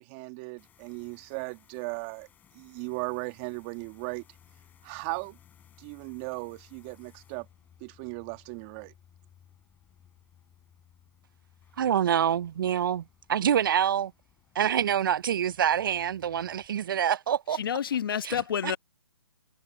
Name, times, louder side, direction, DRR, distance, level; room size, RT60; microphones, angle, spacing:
voice 1, 0.0-2.3 2.5-4.2 4.8-5.4 5.8-7.5 7.8-8.9, right 27 dB, 25° right, 1.9 m, -37 dB
sound 1, 0.6-16.7, left 9 dB, 10° left, 7.3 m, -60 dB
voice 2, 11.8-14.1 14.6-17.6 18.2-18.8, right 9 dB, 55° right, 0.4 m, -26 dB
voice 3, 17.5-18.8, left 8 dB, 55° left, 1.3 m, -29 dB
hypercardioid pair, 150°, 14 cm